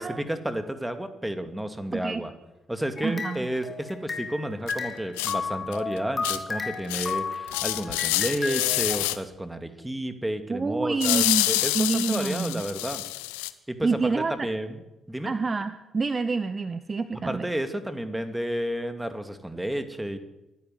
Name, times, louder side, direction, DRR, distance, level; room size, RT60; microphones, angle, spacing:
voice 1, 0.0-2.3 2.7-13.0 13.7-14.8 15.1-15.3 17.2-20.2, right 1 dB, 10° right, 8 dB, 2.5 m, -31 dB
voice 2, 1.9-2.3 3.0-3.5 10.5-11.5 11.7-12.6 13.8-14.5 15.2-17.5, right 4 dB, 30° right, 12 dB, 1.0 m, -27 dB
sound 1, 3.0-4.4 4.7-9.0, left 4 dB, 35° left, 3.9 m, -33 dB
sound 2, 4.7-4.8 5.2-5.3 5.7-5.8 6.2-6.4 6.9-7.2 7.5-9.2 11.0-13.5, left 19 dB, 70° left, 0.8 m, -27 dB
25.0 x 13.0 x 8.1 m, 1.0 s
figure-of-eight pair, 40°, 0 cm